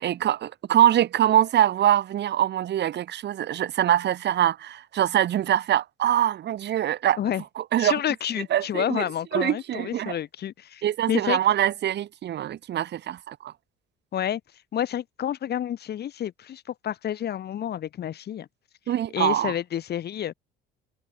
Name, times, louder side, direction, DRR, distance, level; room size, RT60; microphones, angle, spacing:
voice 1, 0.0-7.2 7.6-8.0 8.5-9.0 9.3-10.2 10.8-13.5 18.9-19.5, right 11 dB, 60° right, 3.5 m, -23 dB
voice 2, 7.8-10.8 11.1-11.4 14.1-14.4 14.7-18.5 19.1-20.3, left 10 dB, 55° left, 2.2 m, -29 dB
supercardioid pair, 90°, 20 cm